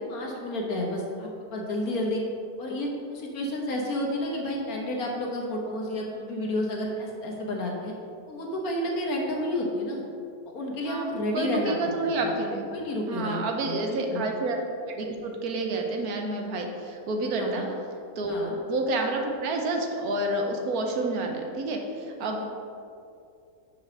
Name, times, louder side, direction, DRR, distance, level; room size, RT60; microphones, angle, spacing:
voice 1, 0.0-2.2 2.6-7.9 8.3-10.0 10.5-11.7 12.0-12.3 12.7-14.2 17.3-17.7 18.3-18.6 22.2-22.4, left 1 dB, 70° left, -1 dB, 1.6 m, -31 dB
voice 2, 10.9-12.7 13.1-14.6 14.9-17.6 18.2-21.8 22.2-22.4, right 2 dB, 75° right, 2 dB, 1.3 m, -29 dB
5.4 x 5.0 x 6.3 m, 2.5 s
omnidirectional pair, 1.6 m